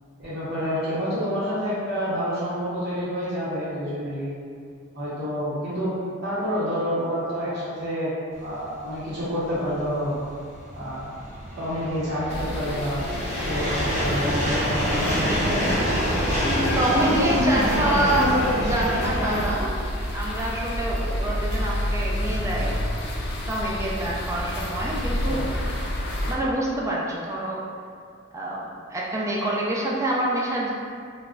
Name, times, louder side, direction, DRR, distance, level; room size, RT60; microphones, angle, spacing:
voice 1, 0.2-4.3 4.9-5.9 6.2-8.1 8.4-10.2 10.7-11.1 11.6-13.1 13.5-15.6 16.5-19.4 25.3-25.5, equal, 55° right, -11 dB, 0.7 m, -28 dB
sound 1, 8.5-19.5, equal, 35° left, 0.8 m, -27 dB
sound 2, 12.3-26.4, left 1 dB, 55° left, 0.4 m, -30 dB
voice 2, 16.4-19.7 20.1-22.7 23.5-25.4 26.3-27.6 28.3-30.7, right 1 dB, 15° right, -5 dB, 0.3 m, -26 dB
2.2 x 2.0 x 3.6 m, 2.2 s
head